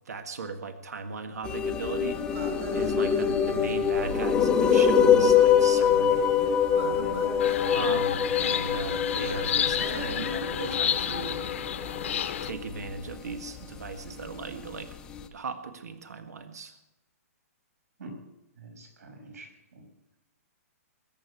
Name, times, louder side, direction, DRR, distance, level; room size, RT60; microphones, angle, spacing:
voice 1, 0.1-2.2 2.7-6.2 7.7-11.4 12.4-15.0 15.3-16.7, right 4 dB, 90° right, 7 dB, 1.7 m, -37 dB
sound 1, 1.4-15.2, left 7 dB, 10° left, 0.7 m, -25 dB
sound 2, 2.0-10.7, right 1 dB, 55° right, 5.7 m, -39 dB
sound 3, 7.4-12.5, left 9 dB, 50° left, 1.0 m, -31 dB
voice 2, 18.6-19.8, right 2 dB, 75° right, 2 dB, 6.0 m, -45 dB
21.5 x 7.9 x 8.3 m, 0.97 s
hypercardioid pair, 170°, 8 cm